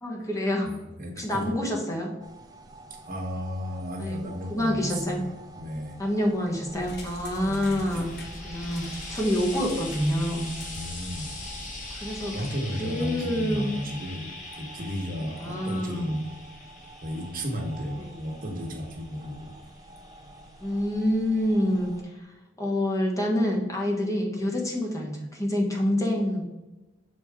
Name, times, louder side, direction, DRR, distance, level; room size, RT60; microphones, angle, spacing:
voice 1, 0.0-0.7 1.2-2.1 4.0-5.2 6.0-8.1 8.4-10.5 11.9-12.4 12.8-13.6 15.4-16.1 18.0-18.1 20.6-26.4, left 1 dB, 15° left, -1 dB, 1.2 m, -27 dB
voice 2, 0.6-1.5 2.9-6.0 7.4-8.0 10.7-11.3 12.3-14.3 14.5-16.3 17.0-19.5, equal, 45° right, 0 dB, 1.4 m, -34 dB
sound 1, 2.2-22.0, right 1 dB, 20° right, 0.7 m, -49 dB
sound 2, 6.7-12.6, equal, 55° left, 1.2 m, -42 dB
Frying (food), 7.4-20.8 21.7-21.8, left 2 dB, 40° left, 1.4 m, -43 dB
6.3 x 4.6 x 3.6 m, 1.1 s
head